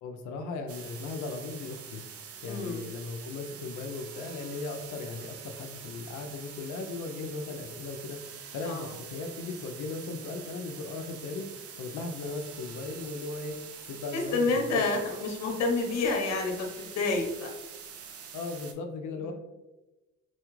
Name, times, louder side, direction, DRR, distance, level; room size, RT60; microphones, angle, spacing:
voice 1, 0.0-2.0 2.4-11.5 11.8-14.8 18.3-19.3, left 3 dB, 75° left, 5 dB, 0.5 m, -37 dB
sound 1, 0.7-18.7, right 7 dB, 50° right, 0.5 m, -45 dB
voice 2, 2.5-2.9 8.6-9.0 14.1-17.5 19.2-19.3, left 3 dB, 60° left, 1 dB, 0.8 m, -29 dB
4.1 x 2.3 x 3.0 m, 1.1 s
cardioid pair, 90°, 30 cm